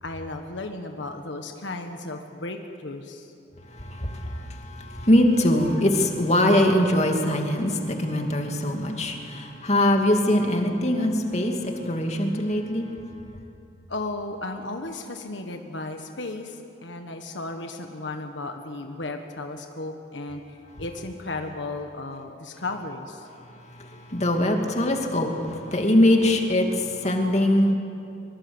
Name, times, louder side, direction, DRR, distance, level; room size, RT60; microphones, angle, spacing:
voice 1, 0.0-3.3 13.9-23.3, left 2 dB, 80° left, 5 dB, 1.5 m, -35 dB
voice 2, 3.7-12.9 23.5-27.7, left 1 dB, 35° left, 3 dB, 2.5 m, -22 dB
23.5 x 23.5 x 8.0 m, 2.6 s
head